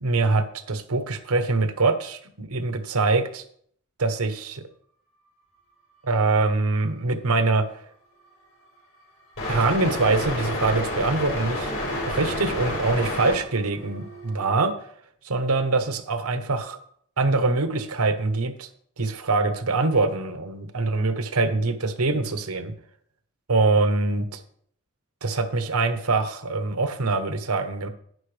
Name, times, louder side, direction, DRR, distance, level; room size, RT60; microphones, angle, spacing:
voice 1, 0.0-3.4 4.0-4.6 6.0-7.7 9.5-11.7 12.1-14.7 15.2-16.8 17.2-18.7 19.0-22.7 23.5-24.4 25.2-27.9, right 3 dB, 80° right, 9 dB, 1.0 m, -24 dB
sound 1, 9.4-14.5, left 1 dB, 70° left, 4.5 m, -30 dB
11.0 x 9.3 x 3.3 m, 0.64 s
head